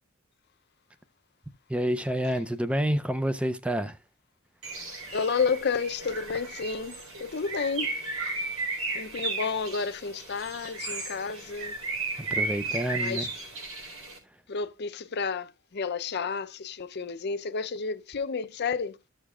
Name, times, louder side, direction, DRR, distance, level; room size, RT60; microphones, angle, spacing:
voice 1, 1.7-4.0 12.2-13.3, equal, 5° right, 0.5 m, -28 dB
Bird, 4.6-14.2, right 3 dB, 80° right, 4.0 m, -34 dB
voice 2, 5.1-8.5 8.9-11.8 13.0-13.3 14.5-19.0, left 5 dB, 50° left, 0.6 m, -31 dB
13.5 x 6.5 x 2.4 m
head